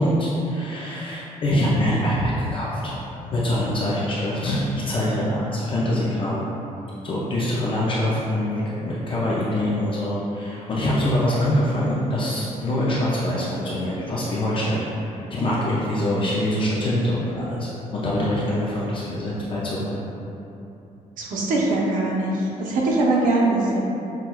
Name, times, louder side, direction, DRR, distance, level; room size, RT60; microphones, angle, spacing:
voice 1, 0.0-2.9 3.3-6.4 7.0-14.8 15.1-20.0, left 1 dB, 40° left, -7 dB, 0.4 m, -24 dB
voice 2, 21.2-23.8, right 2 dB, 75° right, -4 dB, 0.8 m, -22 dB
5.8 x 2.2 x 2.2 m, 3.0 s
cardioid pair, 145°, 14 cm